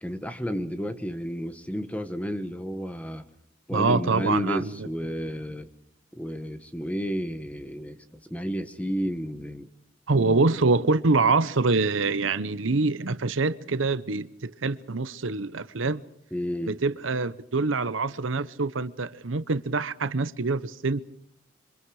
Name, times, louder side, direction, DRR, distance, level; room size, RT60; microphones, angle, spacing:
voice 1, 0.0-3.2 3.7-5.7 6.1-9.7 10.1-10.4 16.3-16.8, equal, 5° left, 1.3 m, -31 dB
voice 2, 3.7-4.7 10.1-16.0 16.7-21.0, right 3 dB, 80° right, 0.9 m, -25 dB
27.5 x 25.5 x 4.9 m
head